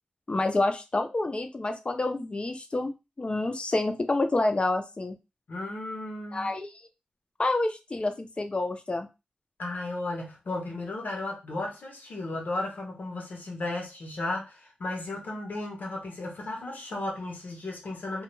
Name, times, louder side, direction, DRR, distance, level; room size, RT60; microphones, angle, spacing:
voice 1, 0.3-2.9 3.2-5.2 6.3-6.7 7.4-9.1, left 2 dB, 40° left, 0.5 m, -28 dB
voice 2, 5.5-6.5 9.6-18.2, left 2 dB, 80° left, 0.8 m, -34 dB
2.3 x 2.2 x 3.0 m
cardioid pair, 60°, 3 cm